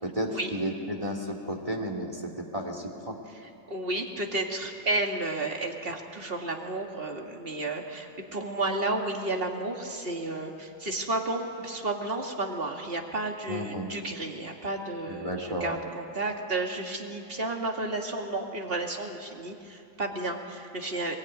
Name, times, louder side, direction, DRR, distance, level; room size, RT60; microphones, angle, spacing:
voice 1, 0.0-3.2 13.5-13.9 15.1-15.8, equal, 25° right, 1 dB, 2.8 m, -33 dB
voice 2, 3.3-21.2, right 2 dB, 45° right, 2 dB, 2.4 m, -32 dB
23.5 x 22.0 x 9.6 m, 2.7 s
omnidirectional pair, 1.4 m